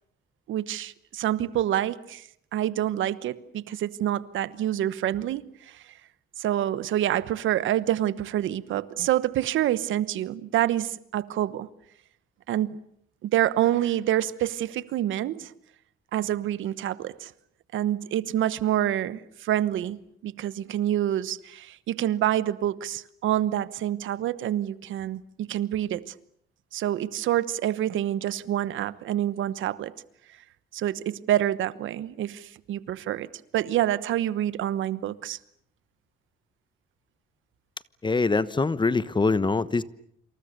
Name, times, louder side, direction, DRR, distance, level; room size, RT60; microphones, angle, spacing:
voice 1, 0.5-5.8 6.4-11.7 12.5-12.8 13.2-15.5 16.1-17.3 17.7-26.1 26.7-29.9 30.7-33.3 33.5-35.4, right 12 dB, 80° right, 1.2 m, -27 dB
voice 2, 38.0-39.8, left 3 dB, 25° left, 1.1 m, -23 dB
27.5 x 27.0 x 6.8 m
cardioid pair, 90°, 20 cm